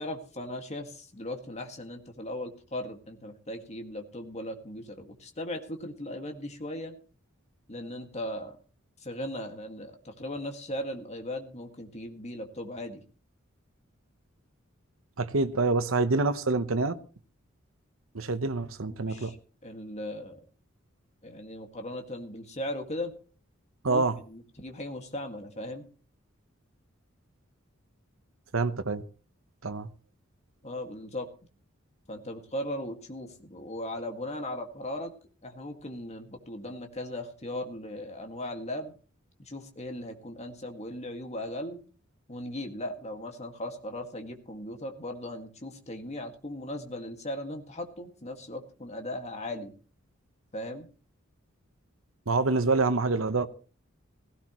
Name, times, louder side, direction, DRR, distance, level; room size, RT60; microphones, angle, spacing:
voice 1, 0.0-6.9 7.7-8.6 9.0-13.0 19.0-19.4 19.6-20.4 21.2-23.1 23.9-25.9 30.6-31.3 32.1-35.1 35.4-38.9 39.5-41.8 42.3-49.7 50.5-50.9, left 1 dB, 35° left, 2.0 m, -38 dB
voice 2, 15.2-17.0 18.1-19.3 23.8-24.1 28.5-29.0 29.6-29.9 52.3-53.5, right 3 dB, 80° right, 1.0 m, -26 dB
16.5 x 16.5 x 3.1 m
head